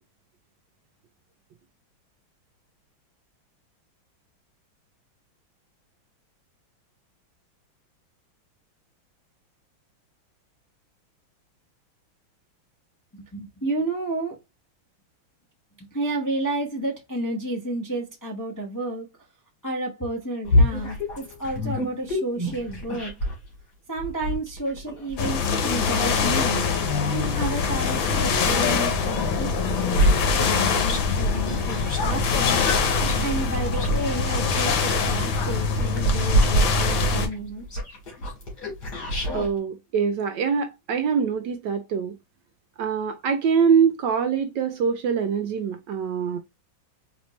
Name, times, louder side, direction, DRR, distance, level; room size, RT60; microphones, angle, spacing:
voice 1, 13.1-14.4 15.8-19.1 19.6-23.1 23.9-26.6 27.1-32.6 33.2-37.6, right 2 dB, 15° left, 0.6 m, -31 dB
sound 1, 20.4-23.4 24.0-28.3 28.8-39.5, equal, 55° left, 2.5 m, -27 dB
sound 2, 25.2-37.3, left 5 dB, 75° left, 1.6 m, -24 dB
voice 2, 39.3-42.2 42.8-46.4, right 6 dB, 75° right, 1.1 m, -24 dB
4.2 x 3.4 x 3.0 m
omnidirectional pair, 2.2 m